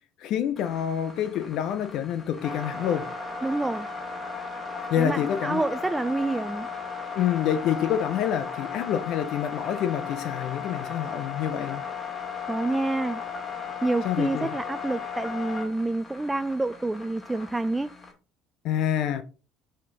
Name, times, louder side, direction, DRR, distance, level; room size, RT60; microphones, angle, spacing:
voice 1, 0.2-3.1 4.9-5.6 7.2-11.8 14.0-14.5 18.6-19.2, left 10 dB, 55° left, 0.5 m, -27 dB
sound 1, 0.6-18.1, left 5 dB, 25° left, 2.2 m, -36 dB
voice 2, 3.4-3.9 5.0-6.7 12.5-13.2 13.8-17.9, right 2 dB, 10° right, 0.4 m, -28 dB
6.2 x 4.3 x 3.8 m
figure-of-eight pair, 60°, 0 cm